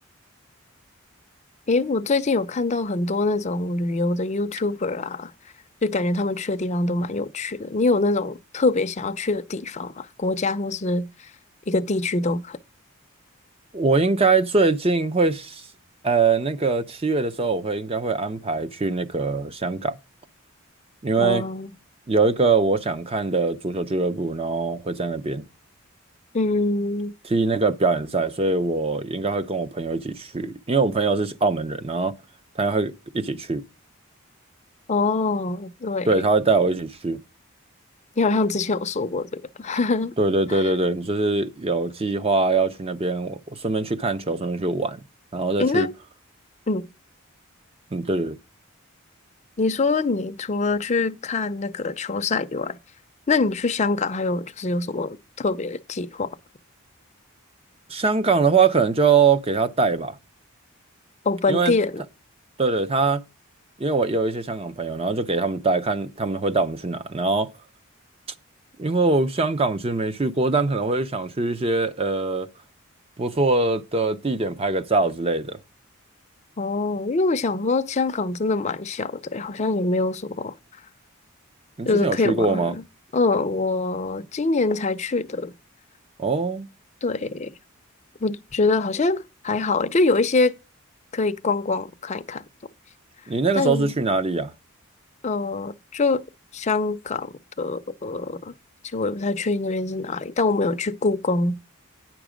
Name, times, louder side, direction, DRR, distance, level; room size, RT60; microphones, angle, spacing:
voice 1, 1.7-5.3 5.8-11.3 11.7-12.6 21.2-21.7 26.3-27.1 34.9-36.1 38.2-40.1 40.5-40.6 45.6-45.9 46.7-46.9 49.6-52.8 53.3-56.3 61.2-62.0 76.6-80.5 81.8-82.8 83.1-85.5 87.0-87.5 88.2-90.5 91.1-92.4 93.5-93.9 95.2-96.2 96.5-98.5 98.8-101.6, left 3 dB, 30° left, 0.5 m, -24 dB
voice 2, 13.7-15.6 16.0-20.0 21.0-21.4 22.1-25.4 27.3-32.1 32.6-33.6 36.1-37.2 40.2-45.0 45.3-45.9 47.9-48.4 57.9-60.2 61.5-61.7 62.6-63.2 63.8-67.5 68.8-72.5 73.2-75.6 81.8-82.7 86.2-86.7 93.3-94.5, right 3 dB, 25° right, 0.6 m, -22 dB
9.8 x 6.0 x 5.0 m
head